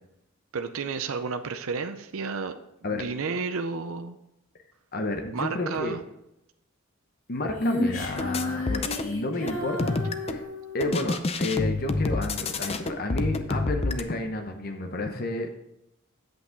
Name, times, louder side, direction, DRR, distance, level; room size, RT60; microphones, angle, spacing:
voice 1, 0.5-2.5 2.9-4.2 5.3-6.0, right 4 dB, 70° right, 7 dB, 0.6 m, -31 dB
voice 2, 4.9-6.0 7.3-9.9 10.3-10.5 10.7-15.5, left 2 dB, 45° left, 5 dB, 0.9 m, -31 dB
Female singing, 7.6-11.1, left 1 dB, 70° left, 2.1 m, -31 dB
sound 1, 8.2-9.1 9.5-10.4 10.8-14.0, left 3 dB, 30° left, 0.5 m, -28 dB
8.5 x 7.8 x 3.9 m, 0.86 s
head